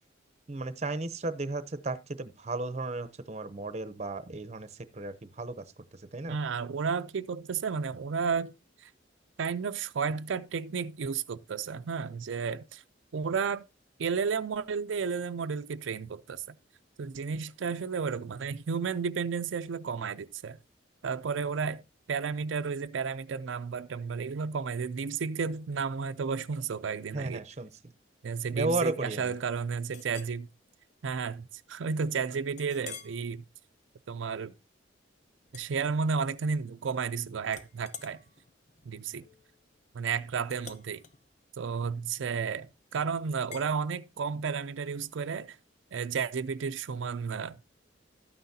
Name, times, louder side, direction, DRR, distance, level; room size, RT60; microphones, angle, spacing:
voice 1, 0.5-4.7 4.9-5.6 6.1-6.4 27.1-27.7 28.5-29.3, right 2 dB, 35° right, 0.7 m, -34 dB
voice 2, 6.3-8.5 8.8-8.9 9.4-12.8 13.1-13.6 14.0-16.4 17.0-20.6 21.0-21.8 22.1-27.4 28.2-30.5 31.0-33.4 34.1-34.5 35.5-38.2 38.9-39.2 39.9-41.0 41.6-45.6 45.9-47.6, right 5 dB, 85° right, 0.4 m, -32 dB
Chink clink, 29.9-30.4 30.9-31.1 31.5-31.6 32.6-33.2 33.7-34.0 35.5-36.4 36.7-37.1 37.5-42.6 43.5-43.7, left 7 dB, 40° left, 0.9 m, -49 dB
12.5 x 9.3 x 2.8 m
head